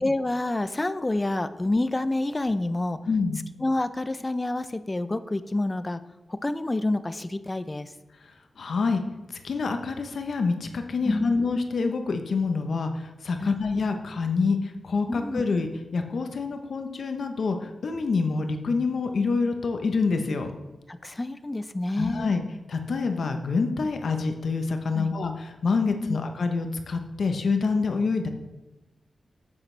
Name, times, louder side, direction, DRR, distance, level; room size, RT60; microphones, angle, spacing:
voice 1, 0.0-3.0 3.6-6.0 6.3-7.9 11.0-11.4 13.4-13.6 15.1-15.4 20.9-22.4 24.9-25.1 25.9-26.2, left 2 dB, 25° left, 12 dB, 0.6 m, -28 dB
voice 2, 3.1-3.4 8.6-9.0 9.4-20.5 22.0-22.4 22.7-28.3, left 4 dB, 75° left, 6 dB, 1.0 m, -26 dB
9.5 x 8.6 x 3.4 m, 1.1 s
cardioid pair, 50°, 0 cm